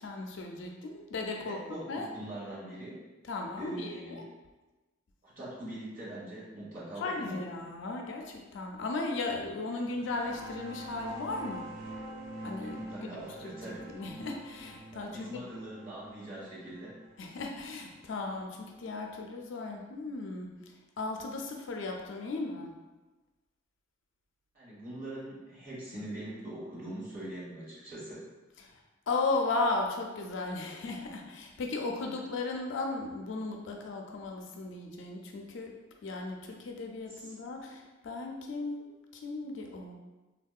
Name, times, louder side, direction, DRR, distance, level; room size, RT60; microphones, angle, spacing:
voice 1, 0.0-2.1 3.3-4.2 7.0-11.6 12.4-12.8 13.0-13.5 13.9-15.4 17.2-20.5 21.0-22.8 28.6-28.8 29.1-35.7 36.0-40.0, left 3 dB, 65° left, 2 dB, 0.4 m, -36 dB
voice 2, 1.4-3.0 3.6-4.2 5.2-7.4 12.6-13.8 14.9-16.9 24.5-28.2 32.0-32.1 37.1-37.3, right 1 dB, 45° right, -8 dB, 1.3 m, -43 dB
sound 1, 9.8-19.1, right 1 dB, 70° right, 0.5 m, -46 dB
3.5 x 2.2 x 2.3 m, 1.2 s
head